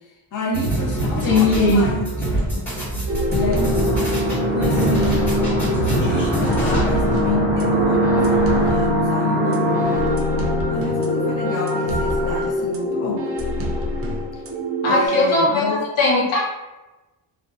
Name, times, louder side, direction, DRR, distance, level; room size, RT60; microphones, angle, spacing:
voice 1, 0.3-2.4 3.3-8.2 8.6-9.7 10.7-13.3 14.9-15.9, left 2 dB, 40° left, 0 dB, 0.5 m, -28 dB
sound 1, 0.5-7.2, right 1 dB, 5° left, 1.3 m, -24 dB
voice 2, 1.2-1.8 14.8-16.4, left 2 dB, 70° left, -3 dB, 0.9 m, -19 dB
sound 2, 3.1-15.1, equal, 30° right, 0.4 m, -25 dB
sound 3, 3.5-13.3, equal, 20° left, 0.8 m, -23 dB
2.5 x 2.2 x 2.4 m, 1.1 s
cardioid pair, 85°, 50 cm